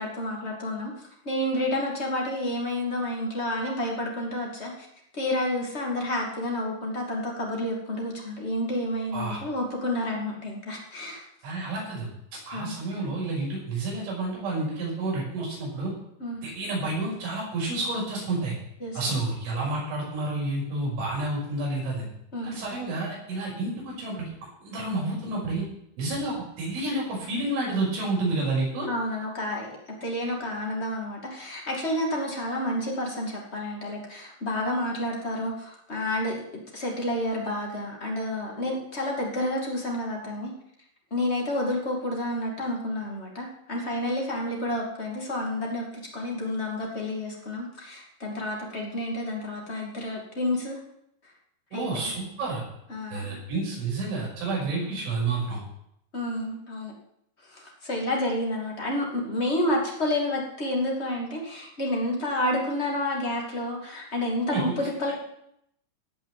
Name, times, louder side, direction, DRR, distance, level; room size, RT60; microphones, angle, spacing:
voice 1, 0.0-4.7 5.1-11.2 12.5-13.1 16.2-16.4 18.8-19.1 22.3-22.6 28.9-36.4 36.7-40.5 41.1-45.9 46.1-50.8 51.7-52.1 52.9-53.3 56.1-56.9 57.5-65.1, left 1 dB, 30° left, -1 dB, 1.2 m, -30 dB
voice 2, 11.4-12.1 12.5-15.9 16.4-18.5 18.9-22.1 22.4-24.2 24.6-25.6 26.0-28.9 51.7-52.6 53.1-55.6 64.5-64.6, right 2 dB, 85° right, -4 dB, 8.6 m, -29 dB
17.5 x 6.1 x 7.6 m, 0.76 s
omnidirectional pair, 5.4 m